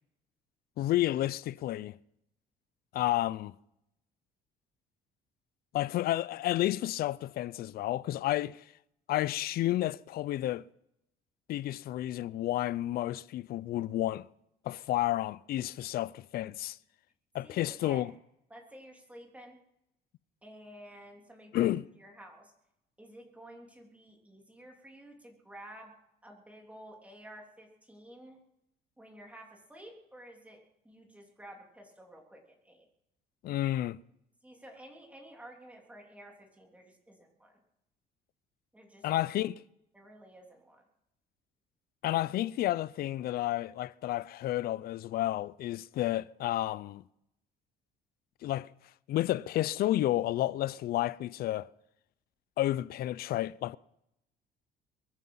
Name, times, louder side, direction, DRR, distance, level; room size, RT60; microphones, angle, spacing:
voice 1, 0.8-2.0 2.9-3.6 5.7-8.6 9.1-10.6 11.5-14.3 14.6-16.8 17.3-18.1 21.5-21.9 33.4-34.0 39.0-39.6 42.0-47.0 48.4-48.7 49.1-51.7 52.6-53.8, left 14 dB, 65° left, 0.5 m, -31 dB
voice 2, 17.4-18.1 18.5-19.6 20.4-21.7 22.0-22.5 23.0-25.9 26.2-28.4 29.0-30.6 30.8-32.9 34.4-37.6 38.7-39.1 39.9-40.8, right 1 dB, 10° right, 3.3 m, -52 dB
23.0 x 9.8 x 5.6 m
cardioid pair, 110°, 17 cm